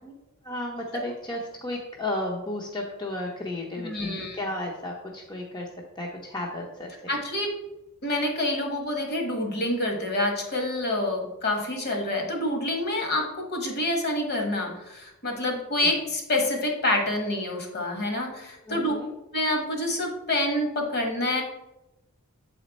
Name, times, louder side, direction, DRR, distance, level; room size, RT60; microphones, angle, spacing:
voice 1, 0.4-5.7 6.0-7.2 15.8-15.9 18.6-19.1, left 1 dB, 20° left, -1 dB, 0.7 m, -33 dB
voice 2, 3.8-4.4 7.1-7.6 8.0-18.9 19.3-21.4, left 1 dB, 50° left, 2 dB, 1.4 m, -27 dB
7.6 x 4.3 x 4.1 m, 0.94 s
head